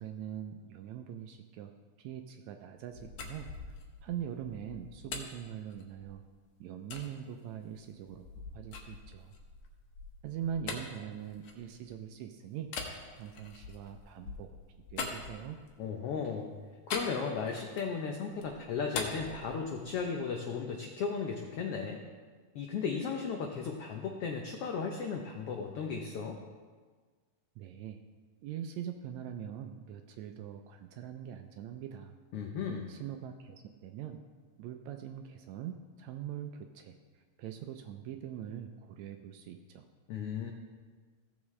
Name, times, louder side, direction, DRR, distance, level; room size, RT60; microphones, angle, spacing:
voice 1, 0.0-1.7 2.0-3.8 4.0-6.2 6.6-9.3 10.2-12.7 13.2-14.5 14.9-15.6 27.6-28.0 28.4-32.2 32.9-34.2 34.6-39.8, right 9 dB, 80° right, 6 dB, 1.7 m, -42 dB
sound 1, 2.8-6.3 6.9-7.1 7.7-12.1 12.7-15.9 16.9-18.0 18.3-20.1, left 4 dB, 65° left, 2.1 m, -43 dB
voice 2, 15.8-16.5 16.9-22.0 22.5-26.4 32.3-32.9 40.1-40.5, left 5 dB, 85° left, 2 dB, 1.3 m, -35 dB
16.0 x 7.1 x 3.2 m, 1.5 s
omnidirectional pair, 3.6 m